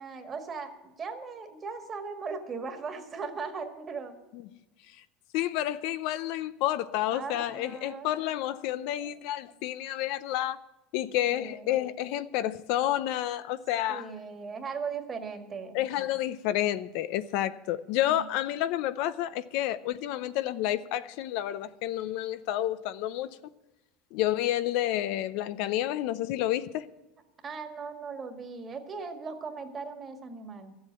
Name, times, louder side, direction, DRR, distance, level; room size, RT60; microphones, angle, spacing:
voice 1, 0.0-4.2 7.1-8.1 9.0-9.2 11.2-11.7 13.9-15.8 18.1-18.2 27.4-30.7, right 5 dB, 25° right, 1.8 m, -38 dB
voice 2, 5.3-10.6 10.9-14.1 15.7-23.4 24.1-26.9, left 13 dB, 60° left, 0.6 m, -30 dB
13.0 x 7.8 x 8.8 m
supercardioid pair, 145°, 0 cm